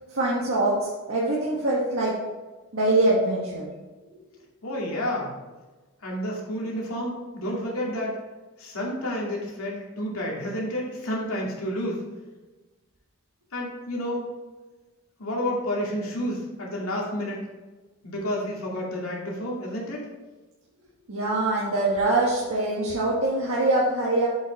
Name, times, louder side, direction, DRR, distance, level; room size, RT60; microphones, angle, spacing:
voice 1, 0.1-2.2 2.7-3.7 21.1-24.3, right 2 dB, 80° right, -6 dB, 1.5 m, -23 dB
voice 2, 4.6-5.3 6.0-8.2 8.6-12.0 13.5-14.3 15.2-17.4 18.0-20.1, equal, 80° left, -3 dB, 2.3 m, -30 dB
7.7 x 5.5 x 4.1 m, 1.2 s
head